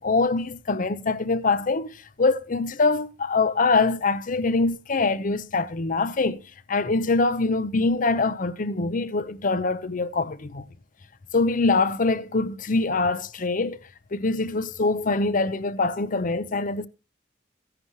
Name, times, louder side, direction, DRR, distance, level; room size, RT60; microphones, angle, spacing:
voice 1, 0.0-6.4 6.7-10.6 11.3-13.8 14.1-16.9, left 3 dB, 45° left, 0.7 m, -24 dB
15.5 x 11.0 x 3.1 m
head